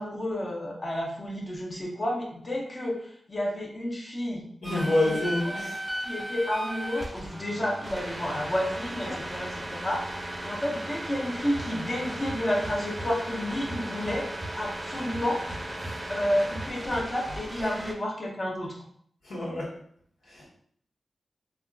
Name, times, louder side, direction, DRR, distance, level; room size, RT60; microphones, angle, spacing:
voice 1, 0.0-4.5 4.8-5.2 5.6-5.7 6.0-10.1 10.4-14.3 14.6-15.4 16.1-18.8, left 1 dB, 40° left, -1 dB, 0.9 m, -30 dB
voice 2, 4.6-5.8 9.1-9.2 15.8-16.0 19.2-19.7 20.3-20.4, left 1 dB, 85° left, -7 dB, 1.2 m, -28 dB
sound 1, 4.6-17.9, right 1 dB, 25° right, 0.6 m, -36 dB
sound 2, 11.6-11.7 12.1-13.1 13.5-14.6 14.9-17.1, right 1 dB, 10° left, 1.1 m, -40 dB
3.4 x 2.3 x 2.4 m, 0.64 s
cardioid pair, 50°, 0 cm